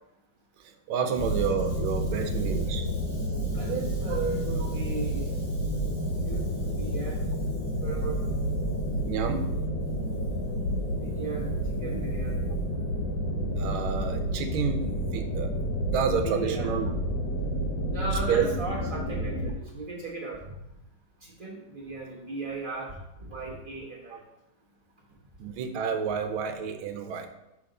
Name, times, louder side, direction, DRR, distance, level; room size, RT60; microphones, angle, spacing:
voice 1, 0.9-2.8 9.1-9.5 13.6-15.5 15.9-16.9 18.3-18.5 25.4-27.3, right 6 dB, 85° right, 6 dB, 1.5 m, -29 dB
sound 1, 1.2-19.5, equal, 65° left, 1.5 m, -30 dB
voice 2, 2.1-5.7 6.2-7.2 7.8-8.3 11.0-11.5 11.8-12.3 16.2-16.7 17.9-20.4 21.2-24.2, right 3 dB, 35° right, -5 dB, 0.9 m, -37 dB
5.8 x 3.6 x 4.9 m, 0.87 s
omnidirectional pair, 2.3 m